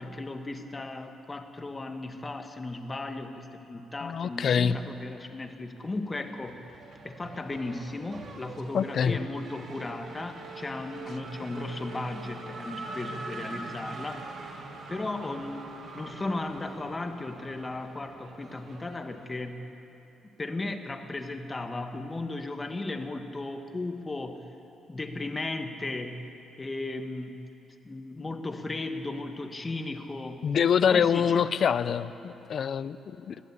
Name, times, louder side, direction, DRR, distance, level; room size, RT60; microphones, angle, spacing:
voice 1, 0.0-6.6 7.0-14.3 14.9-15.7 15.9-19.6 20.4-24.4 24.9-26.3 26.6-27.4 27.8-30.5 30.9-31.5, left 2 dB, 25° left, 6 dB, 1.7 m, -36 dB
voice 2, 4.0-4.8 8.7-9.2 30.4-33.4, left 7 dB, 55° left, 15 dB, 0.7 m, -25 dB
Race car auto racing / Accelerating revving vroom, 4.4-5.4 5.7-19.4, right 3 dB, 55° right, 2.7 m, -43 dB
21.0 x 15.0 x 8.5 m, 2.9 s
cardioid pair, 90°, 0 cm